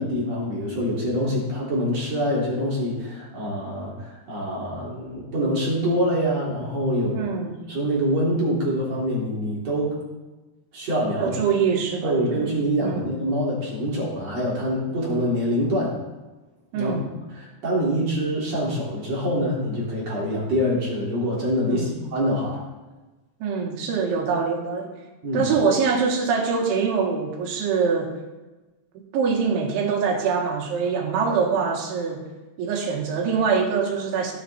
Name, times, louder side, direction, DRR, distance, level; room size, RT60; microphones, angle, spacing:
voice 1, 0.0-7.2 7.7-9.9 10.7-11.3 12.0-15.9 16.7-16.9 17.3-22.6 25.2-25.5, equal, 40° right, -5 dB, 4.0 m, -25 dB
voice 2, 7.1-7.5 11.2-12.5 12.8-13.1 16.7-17.1 21.7-22.0 23.4-24.9 25.3-28.1 29.1-32.2 32.6-34.3, right 5 dB, 75° right, 1 dB, 4.0 m, -24 dB
17.0 x 8.3 x 4.3 m, 1.2 s
omnidirectional pair, 5.4 m